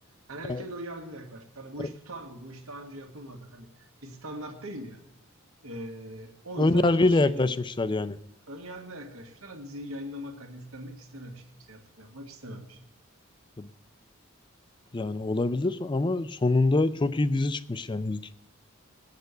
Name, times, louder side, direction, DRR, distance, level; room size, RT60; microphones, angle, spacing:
voice 1, 0.3-5.0 5.6-7.5 8.5-12.8, equal, 90° right, 4 dB, 1.7 m, -41 dB
voice 2, 6.6-8.2 13.6-13.7 14.9-18.3, left 2 dB, 20° left, 15 dB, 0.4 m, -25 dB
19.5 x 6.7 x 8.1 m, 0.91 s
head